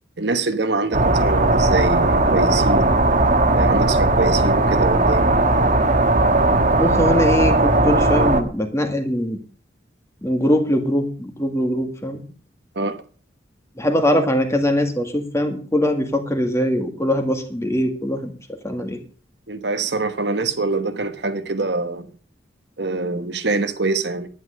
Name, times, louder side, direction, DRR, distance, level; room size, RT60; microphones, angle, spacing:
voice 1, 0.2-3.0 3.5-5.2 12.7-13.0 14.2-14.3 19.5-22.1 22.8-24.3, right 3 dB, 65° right, 1.2 m, -24 dB
sound 1, 0.9-8.4, right 2 dB, 40° right, 1.4 m, -17 dB
voice 2, 6.8-9.4 10.2-12.2 13.8-18.3 18.6-19.0, left 1 dB, 15° left, 2.0 m, -21 dB
11.5 x 10.5 x 6.4 m
head